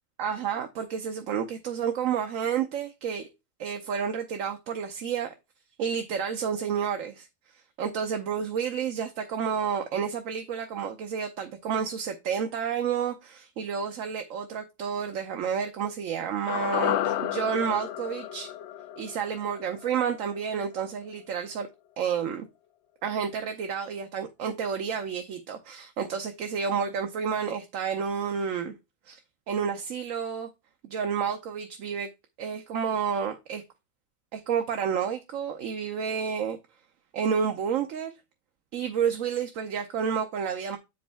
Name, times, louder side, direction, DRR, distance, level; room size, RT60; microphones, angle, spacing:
voice 1, 0.2-3.3 3.6-5.3 5.8-7.3 7.8-18.5 19.0-21.7 22.0-22.5 23.0-28.7 29.1-29.2 29.5-30.5 30.8-32.1 32.4-33.6 34.3-36.6 37.1-38.1 38.7-40.8, right 7 dB, 75° right, 1.1 m, -30 dB
sound 1, 16.5-20.8 21.1-21.2, left 11 dB, 65° left, 0.8 m, -32 dB
6.9 x 5.2 x 3.4 m
omnidirectional pair, 1.4 m